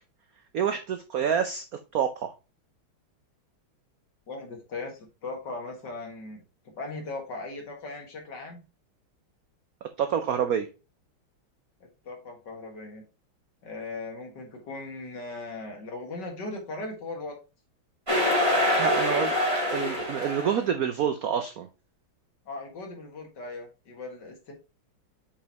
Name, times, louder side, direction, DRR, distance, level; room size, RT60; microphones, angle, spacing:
voice 1, 0.5-1.6 1.9-2.3 10.0-10.7 18.8-19.3 19.7-21.7, right 8 dB, 75° right, 0.8 m, -27 dB
voice 2, 4.3-8.6 12.0-13.0 13.6-17.4 22.5-24.5, left 3 dB, 55° left, 2.3 m, -38 dB
sound 1, 18.1-20.6, left 1 dB, 15° right, 2.5 m, -25 dB
7.0 x 5.2 x 2.9 m
omnidirectional pair, 2.3 m